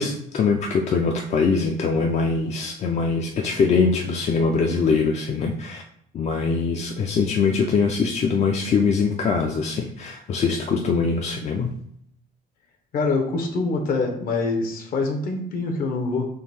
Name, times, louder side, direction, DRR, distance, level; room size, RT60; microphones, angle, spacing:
voice 1, 0.0-5.8 6.1-11.7, left 5 dB, 40° left, 2 dB, 0.4 m, -22 dB
voice 2, 12.9-16.3, left 3 dB, 60° left, 3 dB, 0.9 m, -25 dB
3.7 x 2.6 x 4.2 m, 0.71 s
cardioid pair, 110°, 17 cm